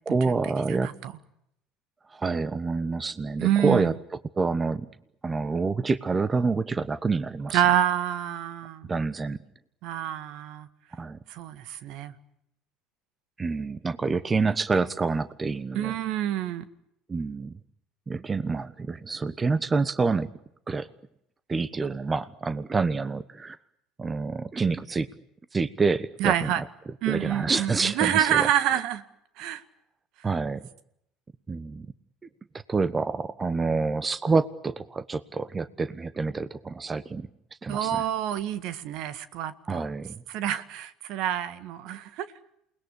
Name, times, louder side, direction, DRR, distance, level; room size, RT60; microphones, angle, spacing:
voice 1, 0.1-0.9 2.1-3.9 4.4-4.9 5.2-7.6 8.9-9.4 10.9-11.2 13.4-16.0 17.1-17.5 18.1-20.3 20.7-20.9 21.5-23.6 24.0-25.1 25.5-26.6 27.1-28.5 30.2-30.7 31.5-31.9 32.7-37.3 37.6-38.0 39.7-40.2, right 4 dB, 25° right, 16 dB, 1.1 m, -27 dB
voice 2, 0.7-1.1 3.4-3.9 7.5-8.9 9.8-10.7 11.3-12.1 15.7-16.7 26.2-26.6 27.0-29.0 29.4-29.6 37.7-39.8 40.3-42.3, right 11 dB, 60° right, 14 dB, 1.8 m, -27 dB
29.0 x 20.5 x 8.3 m, 0.78 s
hypercardioid pair, 65°, 0 cm